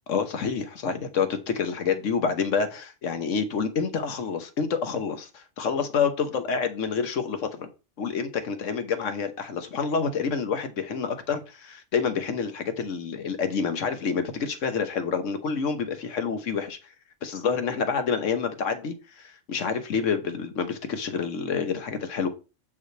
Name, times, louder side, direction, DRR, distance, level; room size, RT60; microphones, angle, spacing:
voice 1, 0.1-7.7 8.0-16.8 17.2-22.3, left 6 dB, 80° left, 1.4 m, -28 dB
7.8 x 5.5 x 3.3 m
omnidirectional pair, 1.3 m